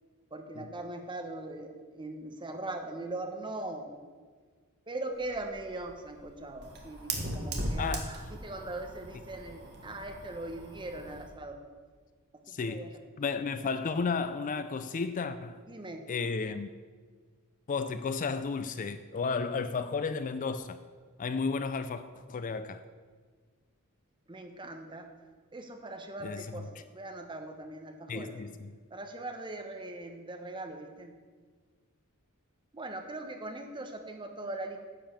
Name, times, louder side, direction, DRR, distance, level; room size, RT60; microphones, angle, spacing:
voice 1, 0.3-4.0 4.9-11.6 12.5-13.0 13.6-13.7 15.7-16.1 24.3-25.1 25.5-28.3 28.9-31.1 32.7-34.8, right 2 dB, 20° right, 4 dB, 1.0 m, -40 dB
Fire, 5.1-11.3, right 1 dB, 50° right, 1.5 m, -39 dB
voice 2, 7.8-8.1 12.5-12.9 13.2-15.6 16.1-16.7 17.7-20.8 21.2-22.0 22.3-22.8 26.2-26.7 28.1-28.7, left 4 dB, 35° left, 12 dB, 0.4 m, -33 dB
10.0 x 5.3 x 7.4 m, 1.5 s
head